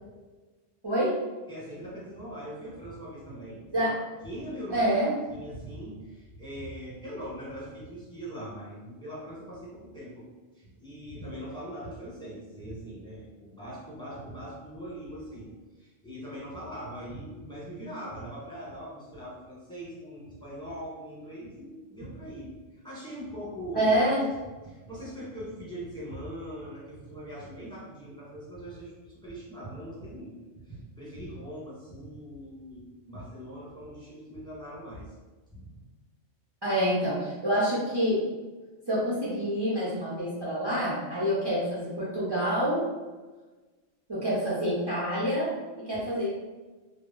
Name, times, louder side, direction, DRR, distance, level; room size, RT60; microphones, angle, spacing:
voice 1, 0.8-1.2 3.7-4.0 4.7-5.1 23.7-24.2 36.6-38.2 38.9-42.8 44.1-46.3, equal, 45° right, -9 dB, 0.3 m, -27 dB
voice 2, 1.5-3.9 4.2-4.8 5.3-10.3 10.5-15.5 15.7-24.0 24.6-30.3 30.6-35.1 35.5-35.7 45.9-46.1, equal, 5° left, -9 dB, 1.0 m, -41 dB
2.3 x 2.0 x 3.7 m, 1.2 s
omnidirectional pair, 1.3 m